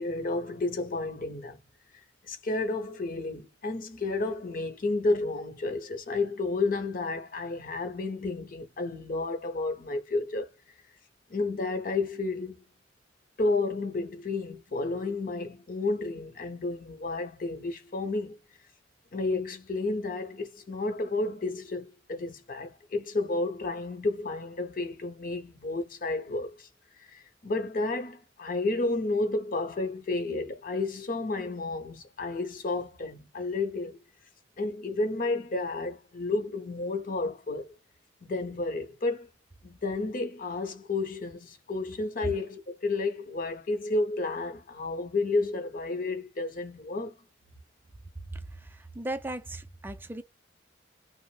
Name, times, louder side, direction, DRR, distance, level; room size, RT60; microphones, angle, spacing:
voice 1, 0.0-1.6 2.2-10.5 11.3-12.6 13.4-18.4 19.1-26.7 27.0-34.0 34.6-37.7 38.2-39.3 39.6-47.1, left 3 dB, 50° left, 0.7 m, -31 dB
voice 2, 48.7-50.2, right 1 dB, 10° right, 0.4 m, -37 dB
3.0 x 2.0 x 3.2 m
head